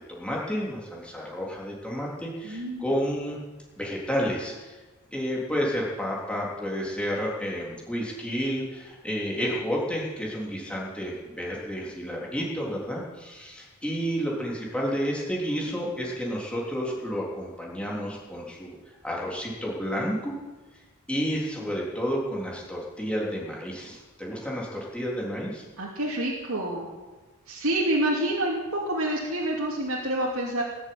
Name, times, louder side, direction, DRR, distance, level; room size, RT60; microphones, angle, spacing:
voice 1, 0.1-3.4 3.8-4.8 5.1-18.8 19.0-20.3 21.1-25.6, equal, 5° left, -4 dB, 3.6 m, -31 dB
voice 2, 2.4-2.9 25.8-26.9 27.5-30.6, right 1 dB, 70° right, -4 dB, 2.8 m, -27 dB
19.0 x 7.7 x 9.6 m, 1.2 s
head